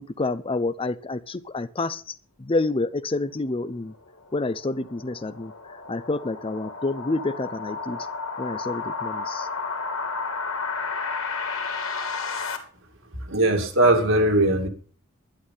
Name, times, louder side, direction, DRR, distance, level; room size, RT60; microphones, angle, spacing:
voice 1, 0.0-3.9 4.3-5.5 5.9-8.1 8.4-9.5, left 2 dB, 25° left, 14 dB, 0.6 m, -28 dB
sound 1, 3.9-12.6, left 4 dB, 85° left, 2.7 m, -32 dB
voice 2, 13.3-14.7, right 1 dB, 65° right, 4 dB, 2.4 m, -19 dB
11.5 x 11.0 x 5.5 m, 0.43 s
head